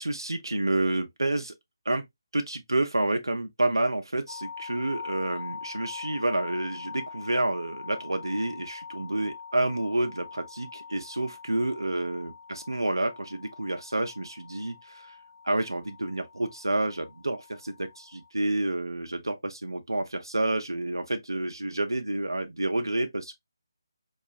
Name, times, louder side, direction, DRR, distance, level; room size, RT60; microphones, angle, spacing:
voice 1, 0.0-1.5 1.9-2.0 2.3-15.1 15.4-23.3, right 2 dB, 85° right, 0.6 m, -29 dB
sound 1, 4.3-18.3, left 6 dB, 60° left, 0.6 m, -43 dB
4.5 x 2.4 x 2.4 m
figure-of-eight pair, 155°, 2 cm